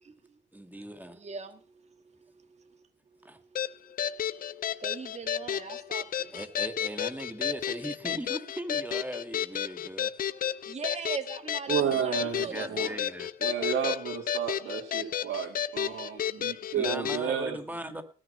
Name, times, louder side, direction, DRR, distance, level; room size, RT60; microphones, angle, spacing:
voice 1, 0.5-1.2 3.2-3.4 6.3-10.1 12.4-13.3 16.7-18.0, right 1 dB, 10° right, 1.8 m, -39 dB
voice 2, 1.1-1.6 4.8-6.3 10.7-13.0 13.6-13.7, right 5 dB, 35° right, 1.9 m, -40 dB
sound 1, 3.6-17.2, left 9 dB, 45° left, 0.5 m, -32 dB
voice 3, 11.7-12.9 13.4-17.6 17.9-18.0, right 8 dB, 70° right, 2.5 m, -32 dB
18.5 x 6.3 x 5.5 m
cardioid pair, 90°, 20 cm